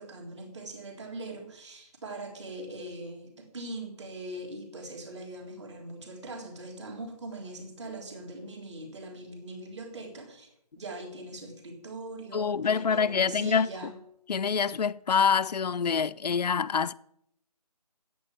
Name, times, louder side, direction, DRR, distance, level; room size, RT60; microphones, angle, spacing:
voice 1, 0.0-10.5 10.8-14.0, right 2 dB, 45° right, 3.8 m, -41 dB
voice 2, 12.3-13.9 14.3-16.9, left 6 dB, 75° left, 0.5 m, -26 dB
10.0 x 8.9 x 7.3 m
figure-of-eight pair, 155°, 21 cm